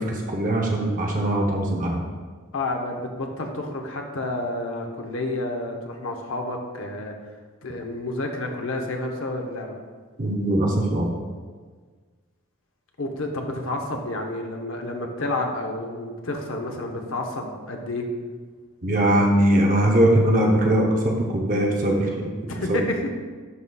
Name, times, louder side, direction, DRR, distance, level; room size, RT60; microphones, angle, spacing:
voice 1, 0.0-2.0 10.2-11.1 18.8-22.3 22.7-22.8, right 1 dB, 35° right, -1 dB, 0.7 m, -21 dB
voice 2, 2.5-7.1 7.6-9.8 13.0-18.1 22.5-23.1, left 2 dB, 65° left, 2 dB, 0.8 m, -30 dB
11.0 x 3.9 x 2.3 m, 1.5 s
head